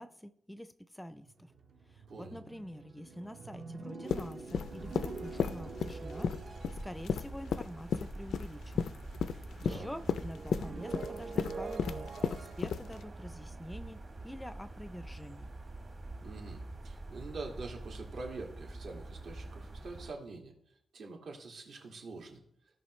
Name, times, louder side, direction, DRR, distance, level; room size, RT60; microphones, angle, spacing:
voice 1, 0.0-1.5 1.9-8.9 9.3-12.1 12.4-14.0 14.2-15.5, equal, 5° left, 11 dB, 0.4 m, -46 dB
sound 1, 1.2-8.9 9.2-14.4, right 4 dB, 50° right, 0.6 m, -47 dB
voice 2, 2.1-2.4 9.6-9.9 16.2-20.5 20.9-22.4, right 3 dB, 75° right, 0 dB, 2.0 m, -45 dB
sound 2, 4.1-13.0, left 7 dB, 85° left, 0.4 m, -34 dB
sound 3, 4.7-20.1, right 2 dB, 35° right, 1.1 m, -46 dB
16.0 x 5.5 x 3.1 m, 0.73 s
wide cardioid pair, 160°, 0 cm